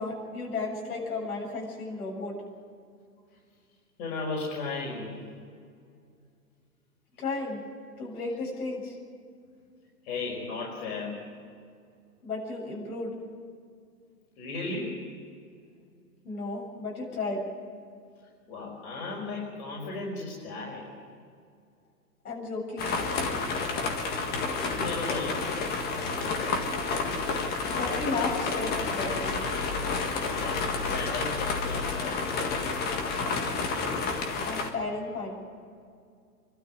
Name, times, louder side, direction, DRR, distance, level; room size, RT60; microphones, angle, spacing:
voice 1, 0.0-2.3 7.2-7.6 8.0-9.0 12.2-13.2 16.2-17.5 22.2-22.9 27.8-29.4 34.4-35.3, left 3 dB, 70° left, -1 dB, 7.5 m, -33 dB
voice 2, 4.0-5.2 10.0-11.2 14.4-15.0 18.5-20.9 24.4-25.5 26.0-26.3 30.0-30.7 30.9-32.7, left 3 dB, 45° left, -3 dB, 5.5 m, -36 dB
sound 1, 22.8-34.7, left 4 dB, 20° left, 1.7 m, -30 dB
23.5 x 12.5 x 9.5 m, 2.3 s
hypercardioid pair, 130°, 46 cm